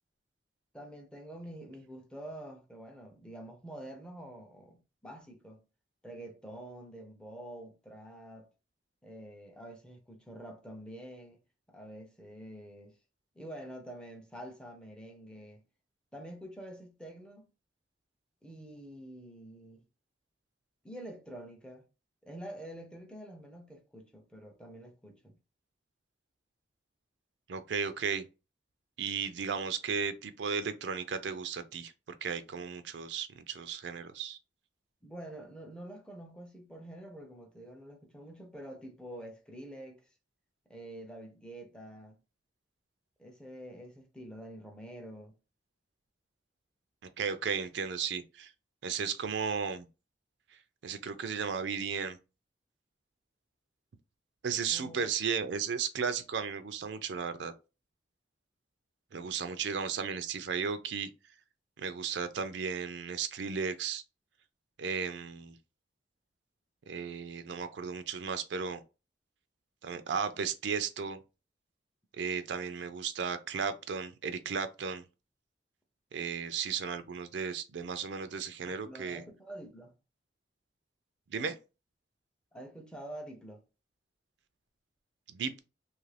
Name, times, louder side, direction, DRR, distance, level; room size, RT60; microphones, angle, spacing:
voice 1, 0.7-5.6 6.0-8.5 9.0-11.4 11.7-13.0 13.3-15.6 16.1-17.5 18.4-19.8 20.8-21.8 22.2-25.4 35.0-40.0 40.7-42.2 43.2-45.3 54.7-55.1 78.6-79.9 82.5-83.6, right 1 dB, 5° left, 0.5 m, -47 dB
voice 2, 27.5-28.2 29.0-34.4 47.2-48.5 48.8-49.9 50.8-52.2 54.4-57.5 59.1-61.1 61.8-64.0 64.8-65.6 66.9-68.8 69.8-71.2 72.1-75.0 76.1-79.2 81.3-81.6 85.3-85.6, right 6 dB, 75° right, 0.4 m, -35 dB
2.7 x 2.5 x 3.2 m
head